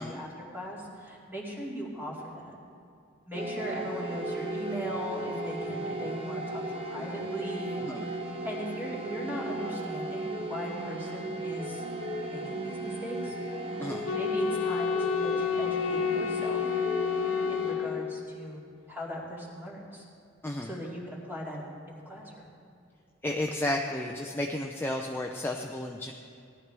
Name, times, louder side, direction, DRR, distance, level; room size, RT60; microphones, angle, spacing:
voice 1, 0.0-2.6 3.3-8.2 8.4-11.8 12.2-13.4 14.1-16.7 17.5-18.6 18.9-20.0 20.6-22.5, equal, 10° right, -4 dB, 2.4 m, -39 dB
sound 1, 3.3-18.2, right 2 dB, 30° right, 1.1 m, -36 dB
voice 2, 13.8-14.1 20.4-20.7 23.2-26.1, left 1 dB, 10° left, 1 dB, 0.5 m, -32 dB
Wind instrument woodwind instrument, 14.1-18.5, left 7 dB, 75° left, 0.5 m, -30 dB
17.5 x 12.0 x 3.4 m, 2.5 s
head